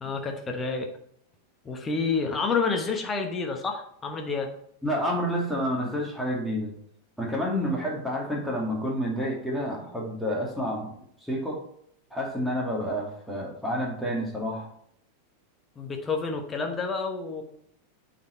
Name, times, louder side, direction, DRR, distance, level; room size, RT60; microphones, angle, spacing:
voice 1, 0.0-0.9 1.6-4.5 15.8-17.4, left 4 dB, 20° left, 3 dB, 1.2 m, -29 dB
voice 2, 4.8-6.7 7.2-10.9 11.2-11.6 12.1-14.7, equal, ahead, -3 dB, 2.2 m, -29 dB
8.6 x 4.3 x 4.5 m, 0.69 s
figure-of-eight pair, 90°, 0 cm